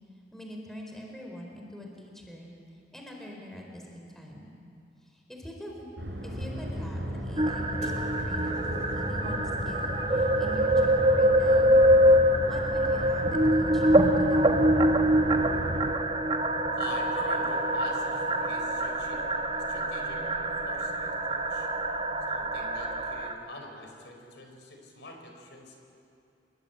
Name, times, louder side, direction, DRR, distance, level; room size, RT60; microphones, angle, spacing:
voice 1, 0.3-2.5 2.9-4.5 5.0-5.9 6.2-11.8 12.4-14.5, equal, ahead, 0 dB, 4.3 m, -43 dB
sound 1, 6.0-15.9, equal, 75° right, 5.3 m, -35 dB
sound 2, 7.4-23.3, right 1 dB, 30° right, 1.4 m, -25 dB
sound 3, 7.8-15.0 15.6-16.3 17.1-17.6 18.6-18.7, left 1 dB, 35° left, 2.4 m, -44 dB
voice 2, 16.8-19.3 19.6-20.2 20.6-21.7 22.3-25.8, left 2 dB, 70° left, 3 dB, 4.5 m, -45 dB
28.0 x 22.5 x 8.9 m, 2.4 s
head